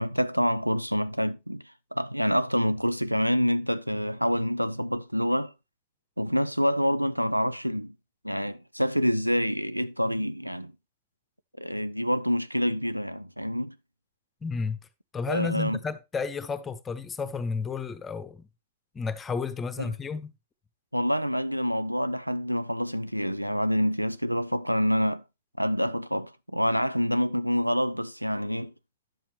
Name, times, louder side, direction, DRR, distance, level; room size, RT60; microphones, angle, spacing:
voice 1, 0.0-1.6 1.9-5.5 6.2-7.9 8.2-10.7 11.6-13.8 15.3-15.8 19.8-19.9 20.9-25.2 25.6-28.7, equal, 90° right, 0.4 m, -27 dB
voice 2, 14.4-14.9 15.1-18.5 18.9-20.3, left 5 dB, 20° left, 0.9 m, -32 dB
10.5 x 7.3 x 3.0 m
figure-of-eight pair, 90°, 0 cm